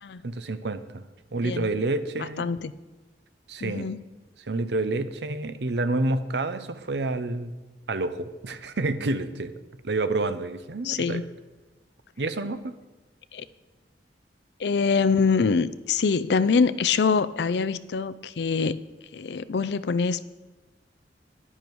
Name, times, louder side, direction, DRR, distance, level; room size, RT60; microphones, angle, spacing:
voice 1, 0.2-1.0 1.3-2.5 3.5-3.9 4.4-7.5 7.9-9.5 9.8-11.2 12.2-12.7, right 2 dB, 70° right, 11 dB, 0.7 m, -28 dB
voice 2, 2.2-2.7 3.6-4.1 10.8-11.2 13.3-13.4 14.6-18.8 19.1-20.2, left 5 dB, 70° left, 16 dB, 0.5 m, -24 dB
11.0 x 10.0 x 4.6 m, 1.2 s
head